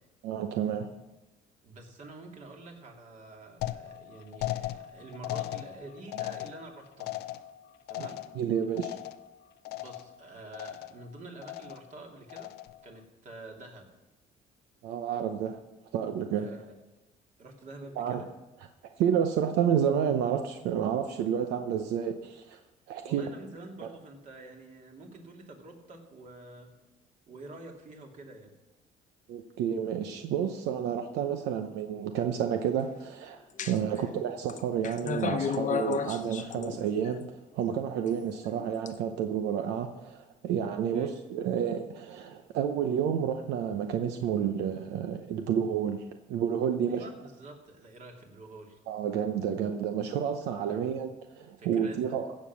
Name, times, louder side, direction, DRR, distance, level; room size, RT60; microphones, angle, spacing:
voice 1, 0.2-0.9 8.0-9.0 14.8-15.6 15.9-16.5 18.0-18.2 19.0-22.6 22.9-23.2 29.3-37.3 37.5-46.0 46.3-47.0 48.9-52.3, right 8 dB, 85° right, 6 dB, 0.8 m, -30 dB
voice 2, 1.6-7.2 7.9-8.2 9.7-12.5 12.8-13.9 16.3-16.7 17.4-18.3 23.0-26.7 27.3-28.5 33.8-34.1 40.9-41.1 46.8-48.8 50.7-50.9 51.6-52.2, right 2 dB, 45° right, 1 dB, 2.9 m, -47 dB
sound 1, 3.6-9.4 9.7-10.2 10.5-11.1 11.4-11.9 12.3-12.9, left 15 dB, 75° left, 0.6 m, -38 dB
sound 2, 33.6-34.0 34.5-37.2 38.1-38.9, left 7 dB, 50° left, 0.9 m, -33 dB
15.5 x 7.7 x 6.2 m, 1.0 s
cardioid pair, 110°, 17 cm